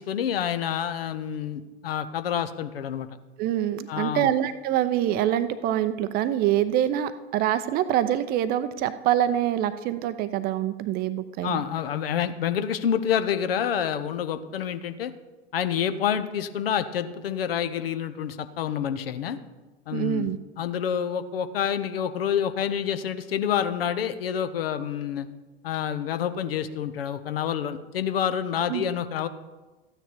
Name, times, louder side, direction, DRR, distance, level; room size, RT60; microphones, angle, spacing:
voice 1, 0.0-3.1 3.9-4.3 11.4-15.1 15.5-19.4 19.9-25.3 25.6-29.3, left 9 dB, 60° left, 11 dB, 0.8 m, -28 dB
voice 2, 3.4-11.6 19.9-20.4 28.7-28.8, right 11 dB, 30° right, 13 dB, 0.5 m, -25 dB
14.0 x 9.0 x 4.4 m, 1.2 s
figure-of-eight pair, 85°, 33 cm